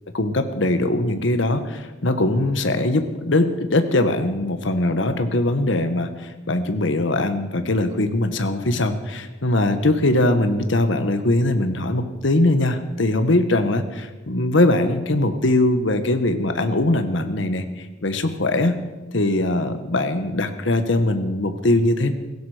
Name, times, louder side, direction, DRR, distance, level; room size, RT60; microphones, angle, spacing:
voice 1, 0.1-18.8 19.1-22.1, left 2 dB, 65° left, 9 dB, 1.3 m, -21 dB
16.5 x 16.0 x 5.0 m, 1.2 s
head